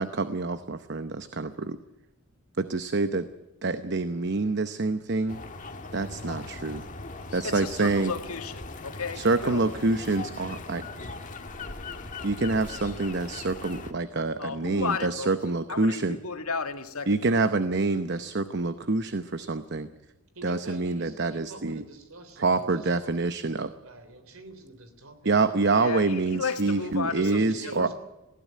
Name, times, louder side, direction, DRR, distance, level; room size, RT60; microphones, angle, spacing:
voice 1, 0.0-1.8 2.6-3.3 3.6-5.4 5.9-6.8 7.3-8.1 9.1-10.9 12.2-16.2 17.1-19.9 20.4-21.8 22.4-23.7 25.2-27.9, right 3 dB, 50° right, 0.8 m, -26 dB
sound 1, 5.3-13.9, left 3 dB, 35° left, 1.6 m, -40 dB
voice 2, 7.4-9.7 14.4-15.4 15.7-17.3 25.7-27.9, left 4 dB, 85° left, 1.9 m, -34 dB
voice 3, 20.4-22.7 23.0-23.1 23.8-25.3 27.2-27.9, right 2 dB, 70° right, 3.6 m, -44 dB
20.0 x 15.5 x 9.5 m
head